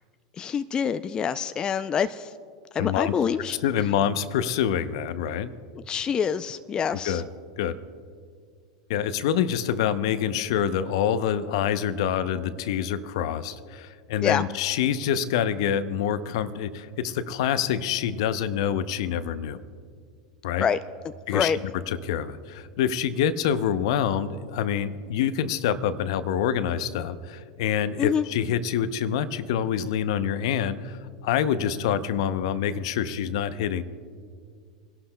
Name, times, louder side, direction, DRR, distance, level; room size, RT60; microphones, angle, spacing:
voice 1, 0.4-2.3 2.7-3.6 5.9-7.2 14.2-14.4 20.6-20.8 21.3-21.6 28.0-28.2, left 7 dB, 25° left, 11 dB, 0.4 m, -26 dB
voice 2, 2.8-3.1 3.5-5.5 7.0-7.3 7.6-7.8 8.9-19.6 20.4-20.7 21.3-21.5 21.9-31.0 31.2-33.8, left 9 dB, 70° left, 13 dB, 0.6 m, -26 dB
27.0 x 11.5 x 2.2 m, 2.1 s
hypercardioid pair, 95°, 3 cm